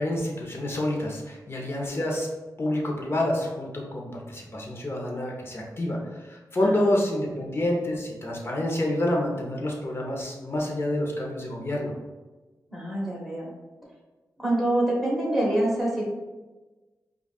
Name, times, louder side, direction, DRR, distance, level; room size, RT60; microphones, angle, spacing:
voice 1, 0.0-2.3 2.6-11.9, left 1 dB, 35° left, -1 dB, 0.8 m, -28 dB
voice 2, 6.6-7.0 12.7-13.5 14.4-16.0, right 1 dB, ahead, -4 dB, 1.2 m, -26 dB
5.0 x 2.4 x 2.4 m, 1.2 s
cardioid pair, 65°, 7 cm